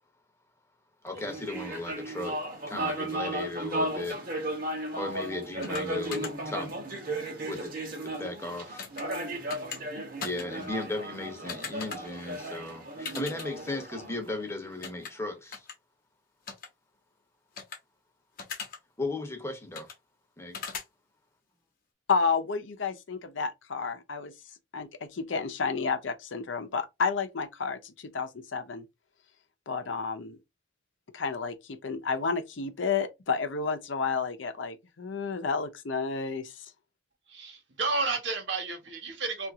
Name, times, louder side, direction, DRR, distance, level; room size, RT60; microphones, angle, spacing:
voice 1, 1.0-2.4 2.7-4.3 4.9-6.7 7.4-7.8 8.0-8.9 10.2-15.7 19.0-19.9 20.4-20.6, left 2 dB, 15° left, 0.8 m, -36 dB
sound 1, 1.1-14.8, right 1 dB, 50° right, 0.9 m, -35 dB
sound 2, 5.6-5.8 6.1-6.3 8.8-9.0 9.5-9.8 10.2-10.4 11.5-12.0 13.0-13.5 14.8-15.1 15.5-15.7 16.5-16.7 17.6-17.8 18.4-18.8 19.7-19.9 20.5-20.8, left 5 dB, 50° left, 0.9 m, -38 dB
voice 2, 22.1-24.3 24.7-28.8 29.7-30.4 31.1-36.7, left 5 dB, 85° left, 0.7 m, -31 dB
voice 3, 37.3-39.5, right 3 dB, 65° right, 1.1 m, -32 dB
2.8 x 2.5 x 3.5 m
head